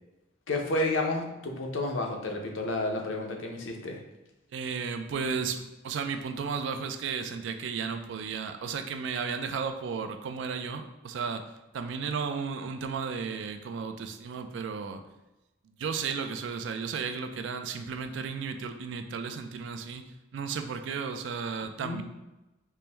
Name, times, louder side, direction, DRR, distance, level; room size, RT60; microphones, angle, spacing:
voice 1, 0.5-4.0 21.8-22.0, left 2 dB, 90° left, 2 dB, 0.6 m, -31 dB
voice 2, 4.5-11.5 11.7-15.0 15.8-20.0 20.3-22.0, right 5 dB, 75° right, 7 dB, 0.3 m, -34 dB
4.4 x 2.1 x 3.3 m, 1.0 s
head